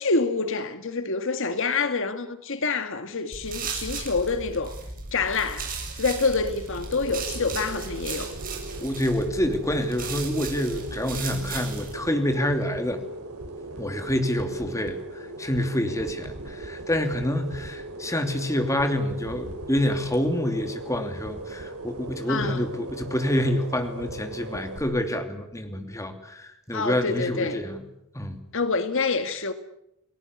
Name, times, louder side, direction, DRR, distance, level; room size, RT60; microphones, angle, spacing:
voice 1, 0.0-4.8 5.1-8.3 22.3-22.6 26.7-27.6 28.5-29.5, left 4 dB, 60° left, 1.9 m, -27 dB
sound 1, 3.3-11.9, right 4 dB, 40° right, 7.5 m, -36 dB
sound 2, 5.1-24.8, right 2 dB, 85° right, 4.7 m, -39 dB
voice 2, 8.8-13.0 13.8-27.8 28.1-28.4, left 1 dB, 15° left, 2.7 m, -27 dB
29.5 x 18.5 x 9.7 m
head